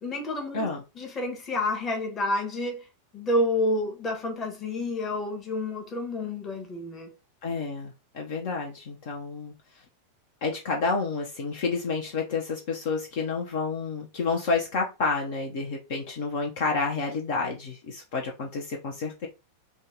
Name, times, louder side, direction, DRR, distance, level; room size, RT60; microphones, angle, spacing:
voice 1, 0.0-0.7 0.9-2.9 3.1-7.1, left 1 dB, 25° left, 1.1 m, -29 dB
voice 2, 7.4-9.5 10.4-19.3, left 4 dB, 50° left, 0.8 m, -29 dB
3.9 x 2.4 x 3.7 m
figure-of-eight pair, 90°, 0 cm